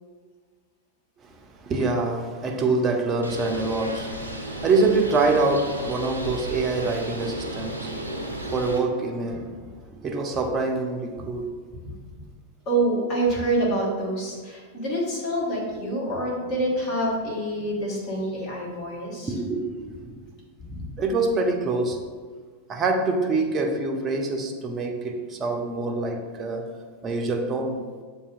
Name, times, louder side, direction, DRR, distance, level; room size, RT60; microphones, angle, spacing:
voice 1, 1.2-8.2 8.5-9.7 10.0-11.6 16.1-16.2 19.3-20.1 21.0-22.1 22.7-27.8, right 3 dB, 25° right, 3 dB, 0.6 m, -25 dB
Bird, 3.2-8.8, right 1 dB, 85° right, 0.5 m, -34 dB
voice 2, 12.6-19.3 20.7-20.8, right 1 dB, 40° left, -5 dB, 1.5 m, -26 dB
6.8 x 2.7 x 2.4 m, 1.5 s
figure-of-eight pair, 90°, 0 cm